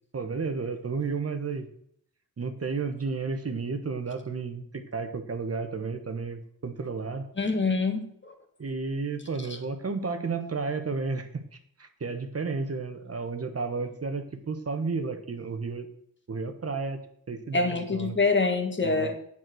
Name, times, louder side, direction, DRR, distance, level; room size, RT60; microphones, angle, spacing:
voice 1, 0.1-1.7 2.4-7.3 8.6-11.4 11.8-15.9 16.3-17.0 17.3-18.1 18.8-19.1, right 4 dB, 40° right, 7 dB, 1.2 m, -32 dB
voice 2, 7.4-8.3 17.5-19.1, left 3 dB, 30° left, 5 dB, 1.8 m, -25 dB
9.2 x 8.7 x 6.3 m, 0.68 s
wide cardioid pair, 135°, 39 cm